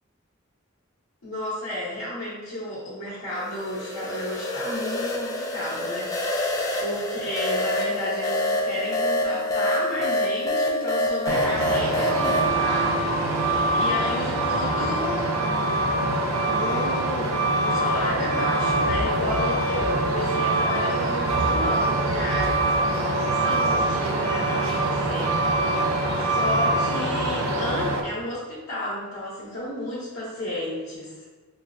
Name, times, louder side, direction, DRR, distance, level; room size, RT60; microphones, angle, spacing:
voice 1, 1.2-6.5 6.8-13.3 13.7-15.3 16.4-31.1, left 1 dB, 70° left, -8 dB, 1.0 m, -32 dB
sound 1, 3.4-12.5, left 1 dB, 15° left, 0.3 m, -26 dB
Truck, 11.3-28.0, right 2 dB, 85° right, 0.5 m, -24 dB
5.5 x 2.1 x 2.5 m, 1.3 s
head